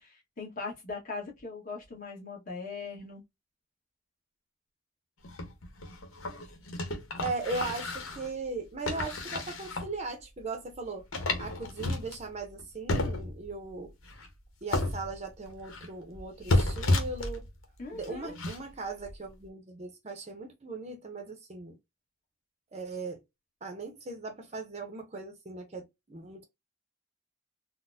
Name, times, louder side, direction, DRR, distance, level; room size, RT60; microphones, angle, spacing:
voice 1, 0.0-3.2 17.8-18.3, left 4 dB, 40° left, 1.3 m, -40 dB
sound 1, 5.2-8.3 8.9-9.9 10.4-10.5 10.7-10.8 11.1-12.6 12.9-13.5 14.0-14.3 14.7-15.9 16.2-17.6 18.0-18.6 19.0-19.1, left 2 dB, 90° left, 0.9 m, -32 dB
voice 2, 7.2-11.1 11.4-13.9 14.6-17.4 17.9-21.8 22.7-23.2 23.6-26.4, right 3 dB, 30° right, 0.6 m, -38 dB
3.9 x 2.1 x 2.6 m
head